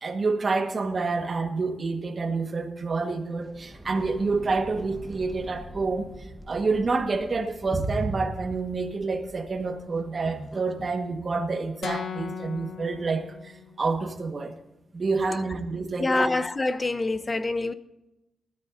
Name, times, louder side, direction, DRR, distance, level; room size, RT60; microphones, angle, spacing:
voice 1, 0.0-6.1 6.5-14.5 14.9-16.3, right 3 dB, 45° right, 1.5 m, -28 dB
sound 1, 3.4-11.0, right 1 dB, 10° right, 1.3 m, -45 dB
sound 2, 11.8-13.9, left 7 dB, 75° left, 0.8 m, -37 dB
voice 2, 16.0-17.7, left 2 dB, 30° left, 0.7 m, -26 dB
19.5 x 13.5 x 2.7 m
cardioid pair, 90°, 0 cm